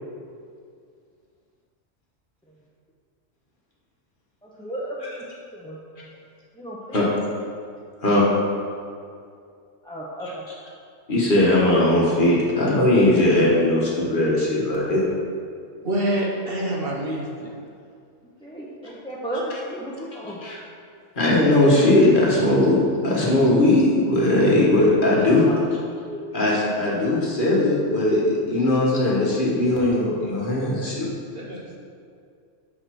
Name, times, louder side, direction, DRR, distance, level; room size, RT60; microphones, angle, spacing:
voice 1, 4.4-5.0 5.5-5.8 6.6-7.0 9.8-10.4 18.4-20.4 25.4-25.6 26.0-26.3, right 1 dB, 5° left, -6 dB, 0.5 m, -33 dB
voice 2, 11.1-15.0 20.4-20.6 21.2-25.5 26.3-31.1, left 1 dB, 40° left, -5 dB, 1.6 m, -19 dB
voice 3, 15.8-17.5 31.3-31.8, right 1 dB, 50° right, -2 dB, 1.1 m, -26 dB
5.9 x 5.4 x 6.1 m, 2.3 s
omnidirectional pair, 1.4 m